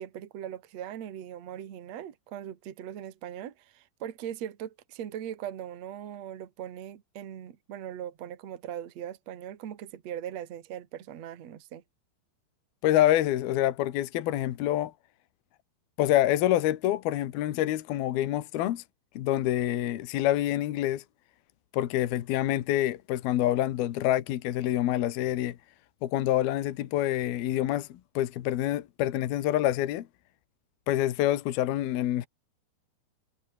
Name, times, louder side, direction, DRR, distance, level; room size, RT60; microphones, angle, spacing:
voice 1, 0.0-11.8, right 10 dB, 50° right, 2.6 m, -40 dB
voice 2, 12.8-14.9 16.0-18.8 19.2-21.0 21.7-25.6 26.0-30.1 30.9-32.3, left 13 dB, 75° left, 3.2 m, -27 dB
omnidirectional pair, 4.6 m